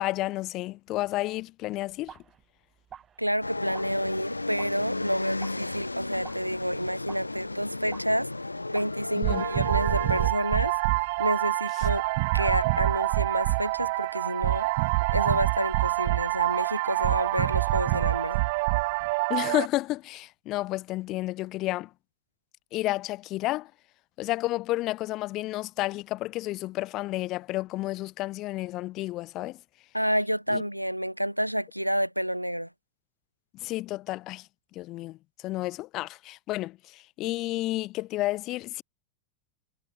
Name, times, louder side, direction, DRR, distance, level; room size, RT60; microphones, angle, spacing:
voice 1, 0.0-2.2 9.2-9.4 19.3-21.9 22.7-23.7 24.2-29.6 30.5-30.6 33.6-34.5 34.7-35.2 35.4-38.8, left 17 dB, 35° left, 1.4 m, -31 dB
sound 1, 1.6-9.1, right 9 dB, 25° right, 6.1 m, -50 dB
voice 2, 3.2-12.0 12.3-14.7 15.1-18.4 29.9-32.7, equal, 90° right, 1.2 m, -29 dB
sound 2, 3.4-10.3, left 2 dB, 85° left, 2.5 m, -34 dB
sound 3, 9.2-19.7, right 25 dB, 50° right, 2.4 m, -26 dB
figure-of-eight pair, 90°, 0 cm